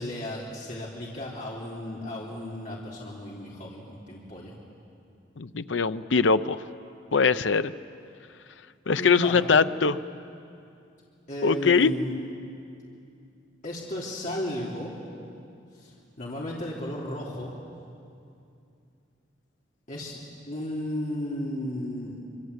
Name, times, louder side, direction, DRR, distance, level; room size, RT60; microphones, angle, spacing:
voice 1, 0.0-4.5 9.0-9.4 11.3-12.1 13.6-15.0 15.7-17.5 19.9-20.2 20.5-22.2, left 1 dB, 45° left, -5 dB, 3.2 m, -34 dB
voice 2, 5.4-6.6 7.1-7.7 8.9-10.0 11.4-11.9, left 5 dB, 85° left, 12 dB, 0.7 m, -22 dB
26.0 x 25.0 x 8.2 m, 2.6 s
head